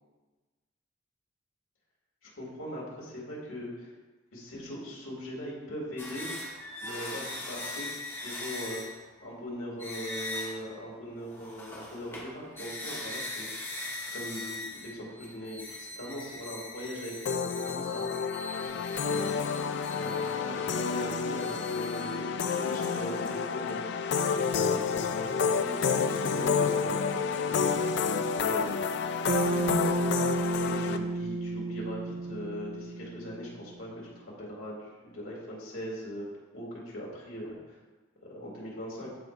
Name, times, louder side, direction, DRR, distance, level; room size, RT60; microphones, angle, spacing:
voice 1, 2.2-3.9 4.3-6.3 6.8-8.8 9.2-13.7 14.1-18.0 18.7-19.3 19.9-22.2 22.7-23.8 24.3-27.7 28.3-28.8 30.6-36.3 36.5-37.8 38.2-39.1, equal, 85° left, -4 dB, 2.2 m, -40 dB
sound 1, 6.0-9.2 9.8-10.8 11.2-22.3, left 2 dB, 10° left, 0.8 m, -41 dB
sound 2, 17.3-31.0, left 5 dB, 55° left, 0.3 m, -29 dB
Bass guitar, 29.3-33.7, right 2 dB, 30° right, 0.4 m, -32 dB
11.5 x 4.5 x 2.5 m, 1.3 s
head